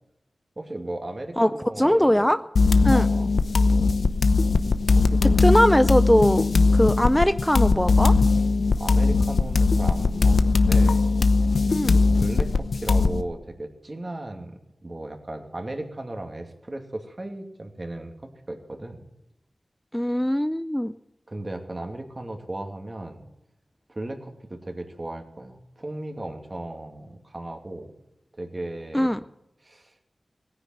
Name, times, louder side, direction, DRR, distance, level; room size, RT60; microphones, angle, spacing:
voice 1, 0.6-2.2 2.9-3.3 4.9-5.5 8.8-11.0 11.4-11.6 11.9-18.1 18.5-19.1 21.3-23.2 23.9-27.9 28.4-29.2 29.6-29.9, right 1 dB, 40° right, 4 dB, 2.5 m, -36 dB
voice 2, 1.8-2.4 2.8-3.1 5.4-6.4 6.7-8.1 11.7-12.0 19.9-20.9 28.9-29.2, equal, 10° left, 12 dB, 0.5 m, -20 dB
sound 1, 2.6-13.2, left 3 dB, 85° left, 0.8 m, -20 dB
17.5 x 9.9 x 7.9 m, 0.88 s
cardioid pair, 45°, 0 cm